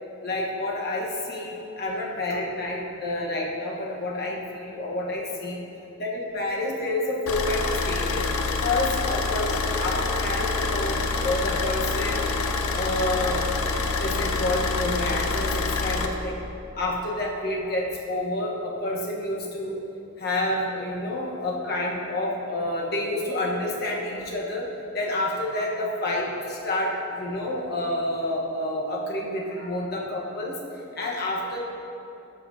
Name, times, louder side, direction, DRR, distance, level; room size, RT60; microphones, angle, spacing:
voice 1, 0.2-5.6 6.0-8.3 8.6-12.2 12.7-13.5 14.0-16.4 16.7-19.7 20.2-24.6 24.9-30.5 30.9-31.6, left 1 dB, 45° left, -3 dB, 1.1 m, -29 dB
Car / Idling, 7.3-16.1, left 3 dB, 80° left, 0.5 m, -26 dB
12.0 x 5.8 x 2.7 m, 2.8 s
head